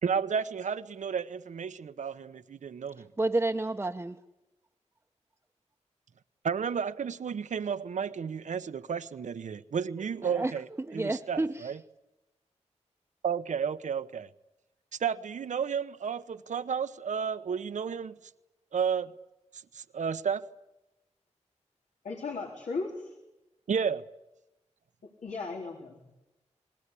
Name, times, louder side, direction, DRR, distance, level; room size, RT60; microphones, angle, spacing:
voice 1, 0.0-3.1 6.4-10.7 10.9-11.8 13.2-14.3 15.0-18.2 18.7-19.1 19.7-20.5 23.7-24.0, right 7 dB, 85° right, 1.0 m, -32 dB
voice 2, 3.2-4.2 10.2-10.5 10.8-11.7, right 2 dB, 20° right, 0.8 m, -30 dB
voice 3, 22.0-23.2 25.2-26.3, left 4 dB, 90° left, 4.0 m, -37 dB
29.0 x 21.0 x 8.5 m
wide cardioid pair, 105°, 12 cm